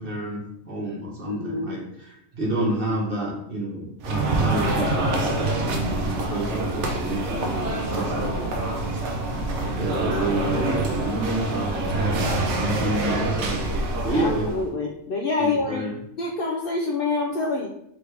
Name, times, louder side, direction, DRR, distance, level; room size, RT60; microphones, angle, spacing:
voice 1, 0.0-8.8 9.7-12.3 12.6-14.5 15.4-15.9, right 1 dB, 45° right, -3 dB, 1.2 m, -29 dB
voice 2, 1.3-1.8 14.1-15.8 16.2-17.7, left 3 dB, 60° left, 0 dB, 0.6 m, -26 dB
sound 1, 4.0-14.7, right 2 dB, 70° right, 1.0 m, -26 dB
3.6 x 3.4 x 3.3 m, 0.75 s
omnidirectional pair, 1.3 m